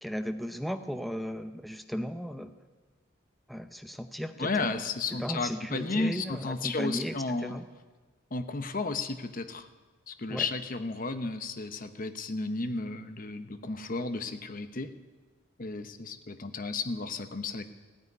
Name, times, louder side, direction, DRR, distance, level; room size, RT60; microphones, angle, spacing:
voice 1, 0.0-2.5 3.5-4.8 5.1-7.6 10.3-10.5, equal, ahead, 8 dB, 0.6 m, -36 dB
voice 2, 4.4-7.6 8.3-9.7 10.1-14.9 15.6-17.6, left 3 dB, 40° left, 9 dB, 0.9 m, -33 dB
15.5 x 9.5 x 9.8 m, 1.3 s
head